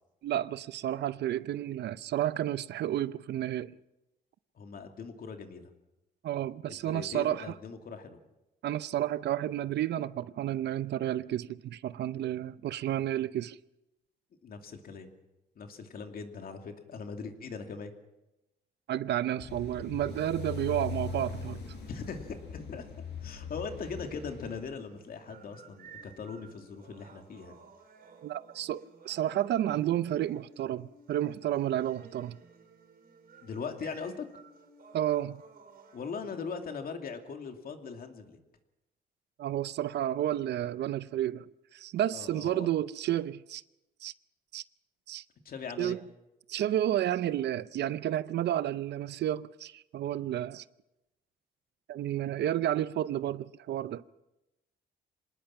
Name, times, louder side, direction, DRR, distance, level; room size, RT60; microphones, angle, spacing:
voice 1, 0.2-3.7 6.2-7.5 8.6-13.6 18.9-21.6 28.2-32.4 34.9-35.4 39.4-43.6 44.0-44.1 44.5-44.6 45.1-45.2 45.8-46.0 46.5-50.6 51.9-54.0, right 12 dB, 75° right, 0.6 m, -31 dB
voice 2, 4.6-5.7 6.7-8.2 14.4-15.1 15.6-17.9 21.9-22.3 22.5-22.9 23.2-27.6 33.4-34.3 35.9-38.4 42.1-42.7 45.4-46.0, left 5 dB, 55° left, 2.6 m, -40 dB
sound 1, 19.4-24.6, left 4 dB, 80° left, 7.8 m, -40 dB
sound 2, 20.1-36.1, right 4 dB, 60° right, 3.9 m, -56 dB
26.0 x 19.0 x 5.9 m
cardioid pair, 110°, 18 cm